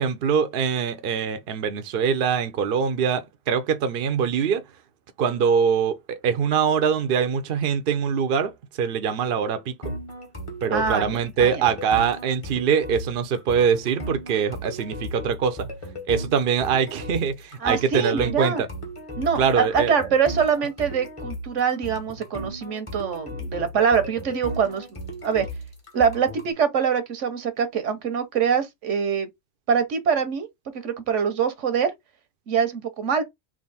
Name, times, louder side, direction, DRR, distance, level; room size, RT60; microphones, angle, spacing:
voice 1, 0.0-4.6 5.2-9.9 10.6-15.7 16.1-18.7 19.4-19.9, right 7 dB, 55° right, 0.8 m, -23 dB
sound 1, 9.8-26.5, equal, 25° left, 1.3 m, -36 dB
voice 2, 10.7-11.6 17.6-18.6 19.2-24.9 25.2-25.5 25.9-29.3 29.7-30.5 30.8-31.9 32.5-33.2, right 6 dB, 80° right, 1.2 m, -24 dB
3.6 x 2.6 x 4.0 m
omnidirectional pair, 1.2 m